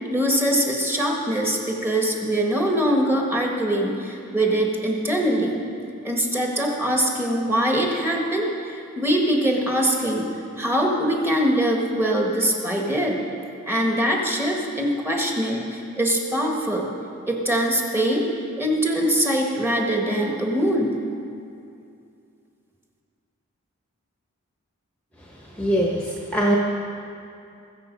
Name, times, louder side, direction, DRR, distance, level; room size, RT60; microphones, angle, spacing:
voice 1, 0.1-5.6 6.0-10.2 10.6-13.2 13.7-16.9 17.3-18.3 18.6-21.0, right 1 dB, 10° right, 0 dB, 1.4 m, -23 dB
voice 2, 25.5-26.6, right 1 dB, 5° left, -3 dB, 1.0 m, -22 dB
21.5 x 7.2 x 5.3 m, 2.6 s
head